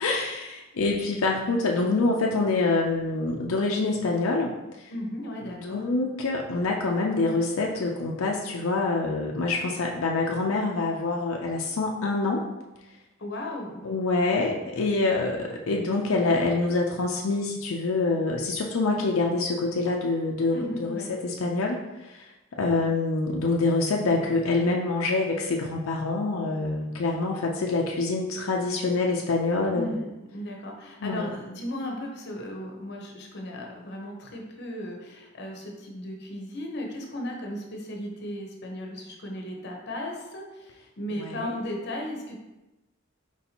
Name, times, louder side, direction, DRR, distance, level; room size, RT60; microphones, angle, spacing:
voice 1, 0.0-4.6 5.5-12.4 13.8-22.3 22.6-30.0 31.0-31.3 41.2-41.5, left 3 dB, 85° left, -1 dB, 0.5 m, -26 dB
voice 2, 4.9-5.8 13.2-13.8 20.5-21.1 29.7-42.4, left 1 dB, 55° left, 1 dB, 0.8 m, -36 dB
4.4 x 4.2 x 2.8 m, 1.0 s
head